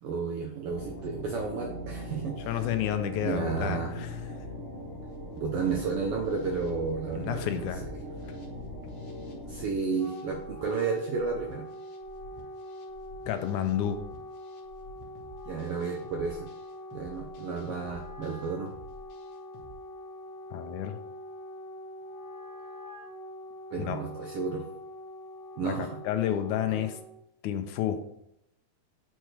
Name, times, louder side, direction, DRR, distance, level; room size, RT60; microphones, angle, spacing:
voice 1, 0.0-2.6 3.2-3.9 5.4-7.9 9.5-11.7 15.5-16.5 16.9-18.7 23.7-24.6 25.6-26.0 26.7-26.9, right 5 dB, 80° right, 2 dB, 1.3 m, -32 dB
sound 1, 0.7-9.6, left 1 dB, 15° right, 2.4 m, -40 dB
voice 2, 2.5-4.1 7.1-7.8 13.3-14.0 20.5-21.0 23.8-24.0 25.6-27.0 27.4-28.0, left 10 dB, 85° left, 9 dB, 2.1 m, -30 dB
sound 2, 5.0-19.7, left 1 dB, 55° left, 1.9 m, -51 dB
Wind instrument woodwind instrument, 9.7-27.2, left 1 dB, 40° left, 3.1 m, -44 dB
8.9 x 4.5 x 3.2 m, 0.79 s
omnidirectional pair, 3.4 m